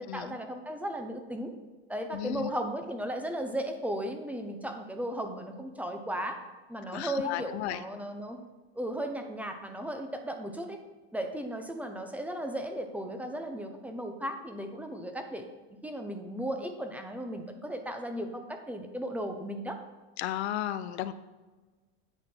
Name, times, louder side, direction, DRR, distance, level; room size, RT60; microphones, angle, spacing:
voice 1, 0.0-1.5 1.9-6.4 6.7-8.4 8.8-10.8 11.1-15.5 15.8-19.8, right 1 dB, 5° right, 5 dB, 0.8 m, -36 dB
voice 2, 2.1-2.5 6.9-7.8 20.2-21.1, left 13 dB, 90° left, 13 dB, 0.7 m, -34 dB
9.0 x 4.3 x 7.4 m, 1.3 s
supercardioid pair, 135°, 32 cm